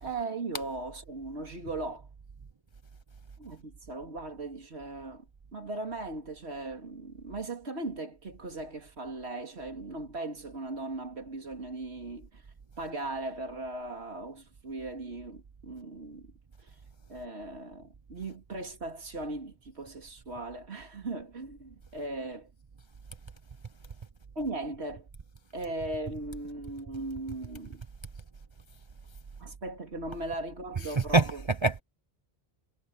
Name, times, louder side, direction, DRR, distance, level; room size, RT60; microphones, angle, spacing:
voice 1, 0.0-2.1 3.4-5.2 5.5-12.4 12.8-16.3 17.1-22.5 24.3-25.1 25.5-27.8 29.4-31.4, right 2 dB, 75° right, 3.0 m, -38 dB
voice 2, 30.8-31.8, right 3 dB, 35° right, 0.5 m, -25 dB
omnidirectional pair, 1.1 m